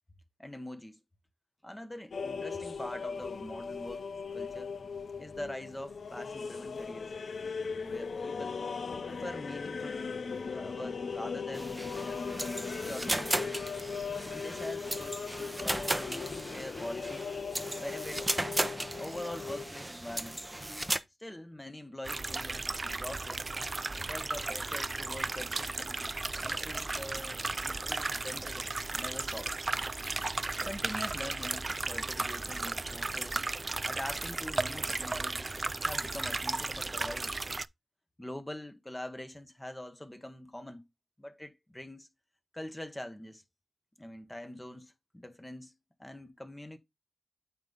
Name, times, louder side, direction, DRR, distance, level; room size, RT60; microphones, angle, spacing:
voice 1, 0.4-1.0 1.6-4.1 4.3-4.7 5.2-7.1 7.8-8.6 9.1-10.2 10.4-12.3 12.7-13.3 14.2-17.3 17.8-18.3 19.0-20.4 21.2-23.4 24.0-26.2 26.4-29.5 30.6-33.4 33.9-37.4 38.2-40.8 41.2-42.1 42.5-43.4 44.0-45.7 46.0-46.8, left 1 dB, 15° left, 1.3 m, -44 dB
sound 1, 2.1-19.7, left 5 dB, 75° left, 0.6 m, -38 dB
sound 2, 11.5-21.0, right 1 dB, 20° right, 0.7 m, -36 dB
sound 3, 22.0-37.7, right 3 dB, 40° right, 0.3 m, -35 dB
8.7 x 4.0 x 3.9 m
cardioid pair, 55°, 0 cm